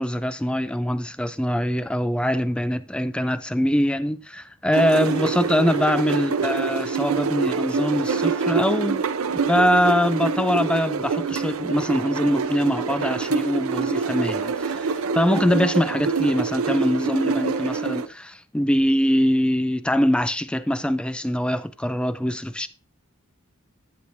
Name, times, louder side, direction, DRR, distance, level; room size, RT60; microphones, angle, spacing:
voice 1, 0.0-9.0 9.4-22.7, equal, 5° left, 0.3 m, -23 dB
sound 1, 4.7-18.1, right 5 dB, 70° right, 0.6 m, -25 dB
11.0 x 7.9 x 2.6 m
head